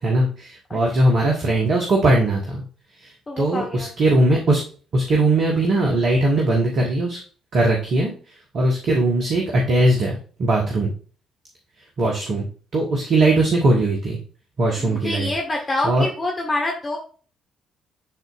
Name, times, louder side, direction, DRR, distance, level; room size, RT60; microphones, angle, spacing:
voice 1, 0.0-2.6 3.0-4.6 4.9-7.2 7.5-8.1 8.5-10.9 12.0-12.5 12.7-14.2 14.6-15.3 15.8-16.0, right 2 dB, 50° right, 0 dB, 1.3 m, -20 dB
voice 2, 0.7-1.1 3.3-3.9 14.8-17.0, left 2 dB, 25° left, 0 dB, 1.4 m, -26 dB
10.5 x 4.1 x 2.5 m, 0.40 s
figure-of-eight pair, 45°, 0 cm